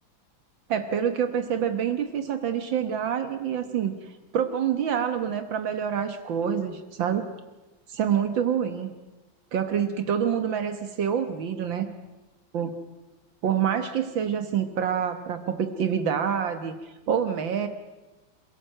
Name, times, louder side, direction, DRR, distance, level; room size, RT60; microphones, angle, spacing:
voice 1, 0.7-3.9 4.3-7.3 7.9-8.9 9.5-11.9 12.5-12.7 13.4-17.7, right 8 dB, 75° right, 9 dB, 2.0 m, -27 dB
27.5 x 16.0 x 7.8 m, 1.1 s
omnidirectional pair, 2.1 m